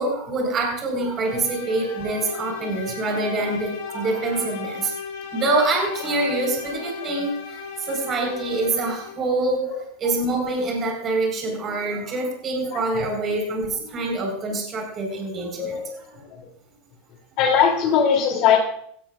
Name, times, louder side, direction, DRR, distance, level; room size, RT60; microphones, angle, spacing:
voice 1, 0.0-4.9 5.3-15.8 16.1-16.2, right 2 dB, 30° right, 1 dB, 4.5 m, -25 dB
sound 1, 0.9-9.3, left 6 dB, 65° left, 5.3 m, -36 dB
voice 2, 12.7-13.1 15.6-15.9 16.3-16.5 17.4-18.6, left 7 dB, 50° left, 3 dB, 2.9 m, -21 dB
17.5 x 13.0 x 2.5 m, 0.65 s
supercardioid pair, 145°, 0 cm